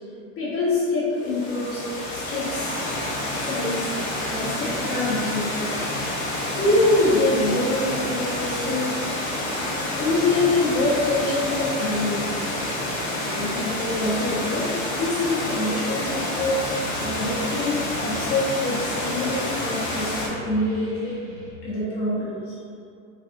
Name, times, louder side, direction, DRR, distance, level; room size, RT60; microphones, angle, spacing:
voice 1, 0.4-1.8 2.1-2.8 3.4-3.9 4.3-5.7 6.5-9.2 9.9-12.3 13.3-16.6 17.0-21.2 21.6-22.5, left 2 dB, 35° left, -9 dB, 0.8 m, -25 dB
Water, 1.2-20.3, left 1 dB, 75° left, 1.0 m, -28 dB
sound 1, 16.3-21.5, equal, 10° right, 0.8 m, -42 dB
3.4 x 2.5 x 2.5 m, 2.5 s
supercardioid pair, 120°, 40 cm